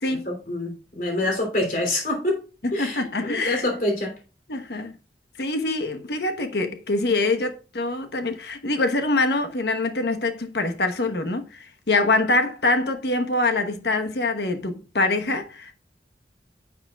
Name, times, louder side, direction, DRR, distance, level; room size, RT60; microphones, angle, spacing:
voice 1, 0.1-2.4 2.7-4.1, left 1 dB, 50° left, 3.0 m, -26 dB
voice 2, 2.8-3.7 4.5-4.9 5.4-15.7, left 2 dB, 65° left, 1.1 m, -24 dB
10.0 x 6.6 x 2.3 m
head